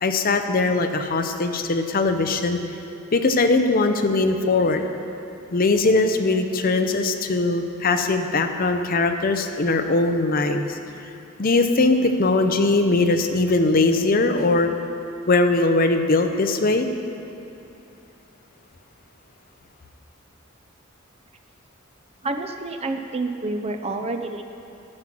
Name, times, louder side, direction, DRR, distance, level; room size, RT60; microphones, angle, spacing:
voice 1, 0.0-2.6 3.1-4.8 5.5-10.8 11.4-14.7 15.3-16.9, left 3 dB, 45° left, 7 dB, 0.6 m, -20 dB
voice 2, 22.2-24.4, right 2 dB, 30° right, 6 dB, 0.5 m, -28 dB
12.0 x 7.5 x 6.0 m, 2.9 s
head